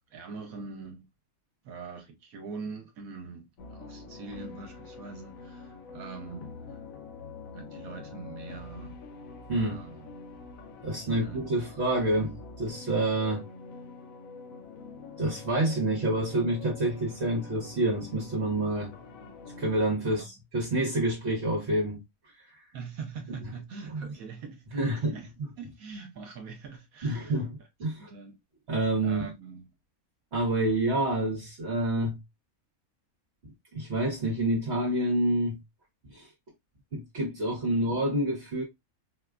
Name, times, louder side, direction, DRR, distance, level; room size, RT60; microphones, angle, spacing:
voice 1, 0.1-1.1 1.6-6.8 7.5-9.0 9.5-10.1 10.9-11.7 13.2-13.4 20.0-20.4 22.7-27.7 28.0-28.4 29.0-29.7 37.7-38.1, right 4 dB, 75° right, 1.2 m, -43 dB
sound 1, 3.6-19.9, left 4 dB, 70° left, 1.1 m, -46 dB
voice 2, 10.8-13.4 15.2-18.9 19.6-22.0 22.5-22.7 23.9-24.0 24.7-25.1 27.0-27.5 27.8-28.1 28.7-29.3 30.3-32.2 33.4-35.6 36.1-36.3 36.9-38.6, right 1 dB, 50° right, 1.2 m, -28 dB
4.3 x 2.2 x 2.3 m
omnidirectional pair, 1.5 m